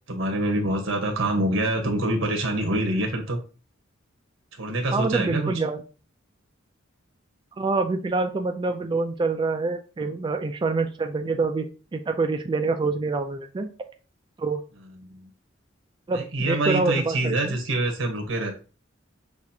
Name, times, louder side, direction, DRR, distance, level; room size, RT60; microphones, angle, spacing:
voice 1, 0.1-3.4 4.5-5.5 15.0-15.3 16.1-18.6, right 1 dB, 80° right, 3 dB, 1.1 m, -26 dB
voice 2, 4.9-5.8 7.6-13.7 14.4-14.6 16.1-17.6, right 3 dB, 25° right, 4 dB, 0.3 m, -26 dB
6.1 x 2.4 x 2.7 m, 0.35 s
head